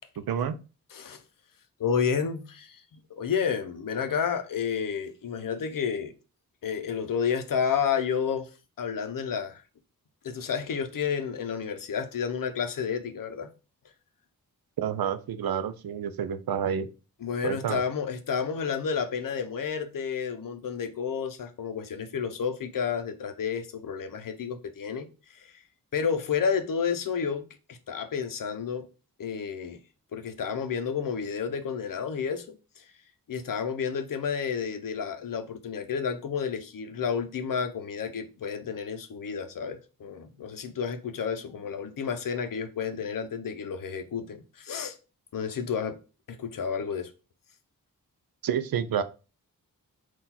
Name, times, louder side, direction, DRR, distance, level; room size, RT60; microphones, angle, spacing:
voice 1, 0.2-0.6 14.8-16.9 17.4-17.8 48.4-49.0, right 8 dB, 85° right, 0.5 m, -29 dB
voice 2, 0.9-1.2 1.8-6.1 6.6-8.5 8.8-9.6 10.2-13.5 17.2-25.5 25.9-27.4 27.7-28.9 29.2-29.8 30.1-32.8 33.3-45.0 45.3-46.0 46.3-47.1, left 6 dB, 65° left, 0.6 m, -31 dB
3.9 x 2.4 x 4.2 m
wide cardioid pair, 100°, 35 cm